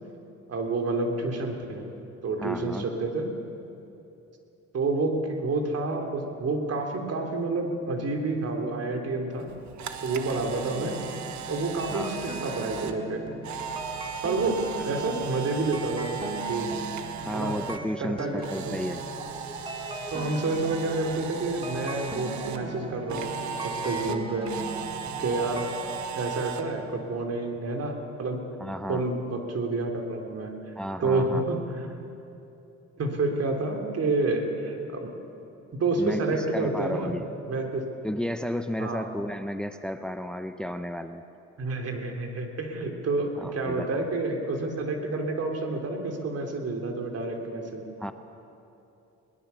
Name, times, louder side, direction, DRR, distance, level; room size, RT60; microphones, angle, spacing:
voice 1, 0.5-1.9 2.2-3.3 4.7-9.5 10.0-11.0 11.5-13.3 14.2-14.6 14.8-16.1 16.5-16.8 17.3-17.6 18.0-18.8 20.1-24.5 25.2-25.7 26.1-28.4 28.9-30.5 31.0-31.8 33.0-35.1 35.7-37.1 37.5-37.9 38.8-39.0 41.6-47.8, right 3 dB, 55° right, 3 dB, 3.4 m, -29 dB
voice 2, 2.4-2.9 11.9-12.2 14.4-14.5 17.2-19.0 28.6-29.1 30.8-31.4 36.0-37.3 38.0-41.2 43.4-44.0 48.0-48.1, equal, 5° left, 9 dB, 0.8 m, -33 dB
Camera, 9.4-17.8 18.1-22.6 23.1-26.6, right 7 dB, 70° right, 1.5 m, -37 dB
sound 1, 10.3-26.0, right 2 dB, 20° right, 2.1 m, -39 dB
22.0 x 20.0 x 7.0 m, 2.9 s
cardioid pair, 90°, 30 cm